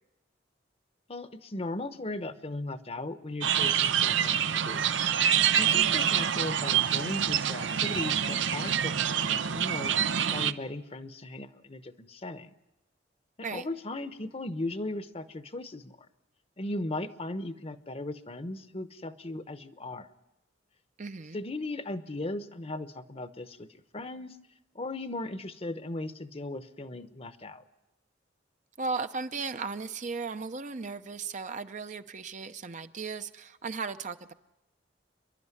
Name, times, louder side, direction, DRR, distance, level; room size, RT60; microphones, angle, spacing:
voice 1, 1.1-4.8 5.6-12.5 13.4-16.0 16.6-20.1 21.3-24.4 24.7-27.6, left 2 dB, 35° left, 11 dB, 0.9 m, -37 dB
sound 1, 3.4-10.5, right 9 dB, 80° right, 0.7 m, -26 dB
voice 2, 5.7-6.1 13.4-13.6 21.0-21.4 28.8-34.3, right 4 dB, 40° right, 9 dB, 0.7 m, -36 dB
29.0 x 11.5 x 9.7 m, 1.0 s
head